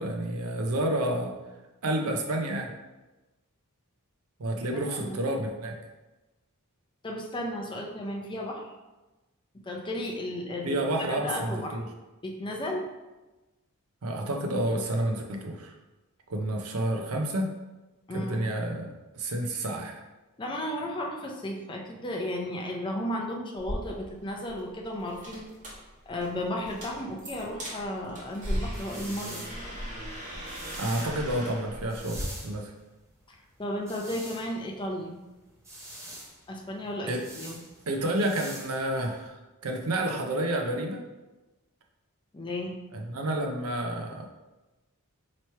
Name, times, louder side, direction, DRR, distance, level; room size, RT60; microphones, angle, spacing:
voice 1, 0.0-1.3 1.8-2.7 4.4-5.8 10.6-11.9 14.0-15.7 16.3-17.5 18.1-20.0 30.8-32.2 32.4-32.7 37.1-37.2 37.9-39.4 39.6-41.0 42.9-44.3, right 1 dB, 75° right, 2 dB, 0.6 m, -29 dB
voice 2, 7.0-8.7 9.6-10.8 11.1-11.8 12.2-12.8 18.1-18.5 20.4-25.5 26.1-29.4 33.3-35.2 36.5-37.6 42.3-42.8, left 1 dB, 20° left, 0 dB, 0.5 m, -34 dB
sound 1, 23.6-32.2, equal, 35° right, 1.2 m, -38 dB
sound 2, 28.3-39.3, right 1 dB, 15° right, 0.8 m, -46 dB
3.0 x 3.0 x 4.4 m, 1.1 s
head